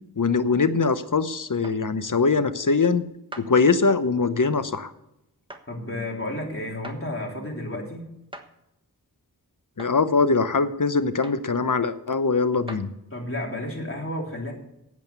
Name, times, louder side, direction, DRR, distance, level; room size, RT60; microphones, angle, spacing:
voice 1, 0.2-3.0 3.4-4.9 9.8-12.9, left 4 dB, 55° left, 12 dB, 0.9 m, -22 dB
sound 1, 1.6-1.8 3.3-3.5 5.5-5.7 6.8-7.0 8.3-8.5 9.8-10.0 11.2-11.5 12.7-12.9, right 1 dB, 15° right, 1.3 m, -40 dB
voice 2, 5.7-8.1 13.1-14.5, left 1 dB, 35° left, -1 dB, 3.4 m, -32 dB
8.8 x 8.3 x 8.1 m, 0.85 s
wide cardioid pair, 50°, 38 cm